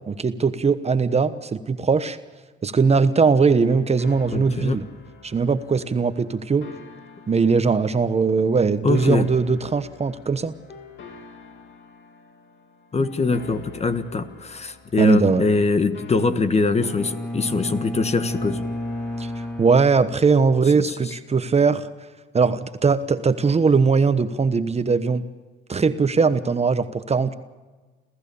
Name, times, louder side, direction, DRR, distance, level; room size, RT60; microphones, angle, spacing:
voice 1, 0.1-2.2 2.6-4.8 5.2-6.7 7.3-10.5 15.0-15.4 19.2-19.3 19.6-21.9 22.3-25.2 25.7-27.3, right 5 dB, 30° right, 11 dB, 1.1 m, -20 dB
sound 1, 2.7-20.7, left 4 dB, 65° left, 3.1 m, -46 dB
voice 2, 4.3-4.8 8.8-9.3 12.9-18.6 20.9-21.1, left 3 dB, 30° left, 11 dB, 1.5 m, -23 dB
Bowed string instrument, 16.8-20.6, left 1 dB, 5° left, 3.0 m, -31 dB
29.5 x 14.5 x 7.0 m, 1.3 s
cardioid pair, 90°, 20 cm